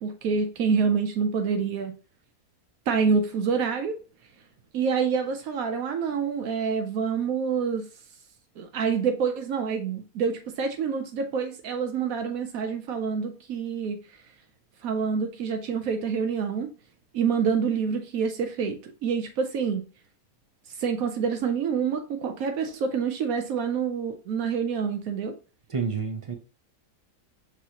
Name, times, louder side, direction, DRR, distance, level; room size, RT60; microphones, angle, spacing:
voice 1, 0.0-2.0 2.9-4.0 4.7-7.8 8.6-14.0 14.8-16.7 17.1-19.9 20.8-25.3, right 6 dB, 80° right, 1.1 m, -27 dB
voice 2, 25.7-26.3, right 5 dB, 40° right, 0.5 m, -29 dB
6.1 x 3.1 x 2.8 m
omnidirectional pair, 1.5 m